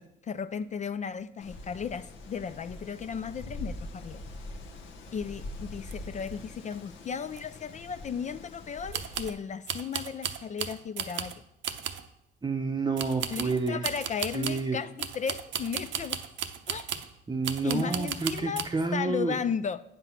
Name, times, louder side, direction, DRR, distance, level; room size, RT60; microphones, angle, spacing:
voice 1, 0.3-4.2 5.1-11.3 13.3-16.2 16.7-16.9 17.6-18.7 18.9-19.8, left 7 dB, 40° left, 13 dB, 0.4 m, -35 dB
Wind, 1.4-9.3, left 2 dB, 70° left, 1.1 m, -43 dB
sound 1, 5.9-6.0 6.2-6.3 6.7-6.8 7.3-7.4 8.9-9.4 9.7-11.4 11.6-12.1 13.0-14.7 15.0-17.1 17.4-18.7, right 9 dB, 70° right, 0.7 m, -35 dB
voice 2, 12.4-13.8 14.3-14.8 17.3-19.4, right 4 dB, 20° right, 4 dB, 0.7 m, -29 dB
9.1 x 6.0 x 5.7 m, 0.81 s
cardioid pair, 90°, 20 cm